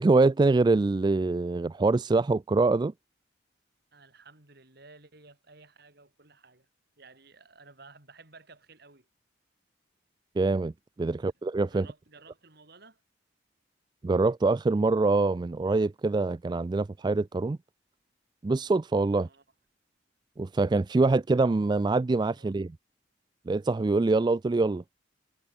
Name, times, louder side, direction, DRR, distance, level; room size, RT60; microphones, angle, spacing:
voice 1, 0.0-2.9 10.4-10.7 11.0-11.9 14.0-17.6 18.4-19.3 20.4-22.7 23.5-24.8, right 3 dB, 25° right, 0.3 m, -24 dB
voice 2, 3.9-6.7 7.0-9.1 11.7-13.0 19.2-19.4 22.3-22.5, right 3 dB, 55° right, 4.3 m, -54 dB
head